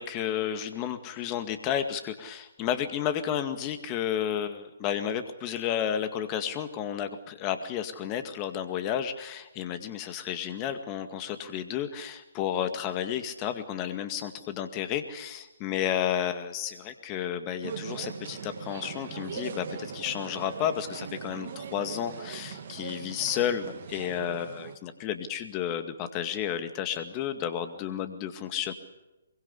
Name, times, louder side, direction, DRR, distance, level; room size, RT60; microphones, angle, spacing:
voice 1, 0.0-28.7, left 9 dB, 25° left, 9 dB, 2.1 m, -32 dB
sound 1, 17.6-24.8, right 6 dB, 50° right, 2.3 m, -40 dB
24.0 x 22.5 x 8.3 m, 1.0 s
figure-of-eight pair, 135°, 0 cm